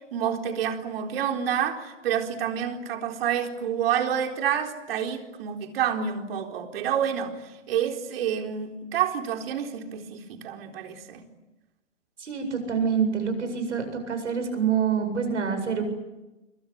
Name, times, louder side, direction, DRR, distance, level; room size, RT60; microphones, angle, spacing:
voice 1, 0.1-7.4 7.7-11.2, right 9 dB, 50° right, 4.2 m, -28 dB
voice 2, 12.2-15.8, right 6 dB, 75° right, 7.9 m, -26 dB
27.0 x 23.5 x 9.3 m
hypercardioid pair, 125°, 37 cm